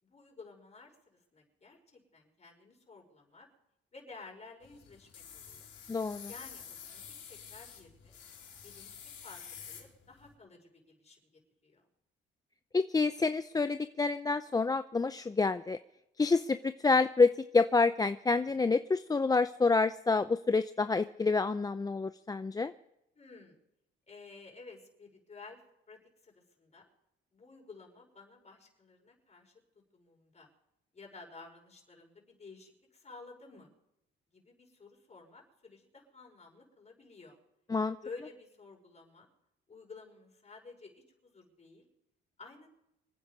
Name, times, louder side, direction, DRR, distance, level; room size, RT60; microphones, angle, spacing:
voice 1, 0.0-3.5 3.9-5.7 6.3-7.0 7.3-8.2 8.6-11.3 11.6-11.8 23.1-23.6 24.1-25.6 25.9-26.9 27.3-29.5 29.9-30.5 30.9-33.7 34.3-37.4 38.0-39.3 39.7-41.9 42.4-42.7, left 4 dB, 35° left, 1 dB, 5.6 m, -53 dB
sound 1, 4.6-10.3, left 7 dB, 75° left, 4.3 m, -49 dB
voice 2, 5.9-6.3 12.7-15.8 16.2-22.7 37.7-38.0, left 4 dB, 20° left, 11 dB, 0.5 m, -28 dB
25.5 x 9.5 x 5.2 m, 0.84 s
cardioid pair, 90°, 20 cm